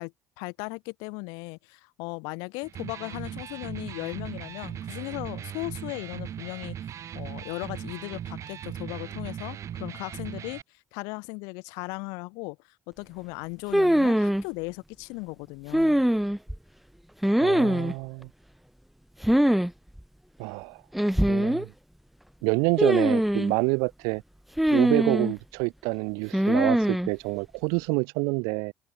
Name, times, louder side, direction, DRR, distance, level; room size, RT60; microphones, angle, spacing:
voice 1, 0.0-10.6 10.9-12.6 12.9-16.0, left 31 dB, 70° left, 1.3 m, -37 dB
Electric guitar, 2.6-10.6, right 9 dB, 50° right, 1.3 m, -38 dB
sound 1, 13.7-14.4 15.7-16.6 17.2-17.9 19.2-19.7 20.0-20.1 20.9-21.6 22.8-23.5 24.6-25.3 26.3-27.1, equal, ahead, 0.3 m, -22 dB
voice 2, 17.4-18.3 20.4-20.8 21.3-21.7 22.4-24.2 24.7-28.7, right 34 dB, 70° right, 0.5 m, -27 dB
hypercardioid pair, 50°, 6 cm